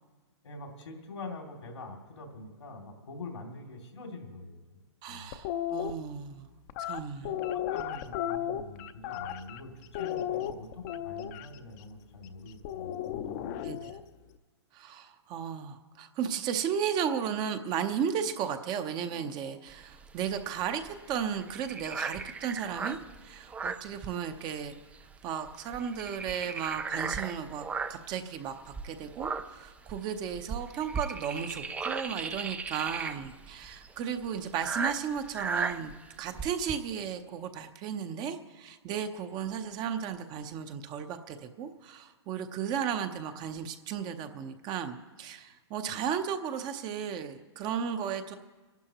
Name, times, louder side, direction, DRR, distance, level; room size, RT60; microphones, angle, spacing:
voice 1, 0.4-4.8 5.1-5.2 7.2-7.3 7.7-13.9 45.9-46.0, left 2 dB, 90° left, 2 dB, 2.7 m, -45 dB
voice 2, 5.0-6.5 6.8-7.3 13.6-13.9 14.7-24.8 25.2-27.6 27.9-35.9 36.2-48.4, right 8 dB, 30° right, 8 dB, 0.8 m, -35 dB
sound 1, 5.3-5.9 6.7-9.6 9.9-11.5 12.6-14.0, left 11 dB, 40° left, 0.6 m, -34 dB
sound 2, 19.7-24.7 24.9-25.1 25.5-28.1 28.7-36.8, right 4 dB, 10° right, 0.4 m, -36 dB
29.0 x 11.5 x 3.0 m, 1.3 s
hypercardioid pair, 135°, 15 cm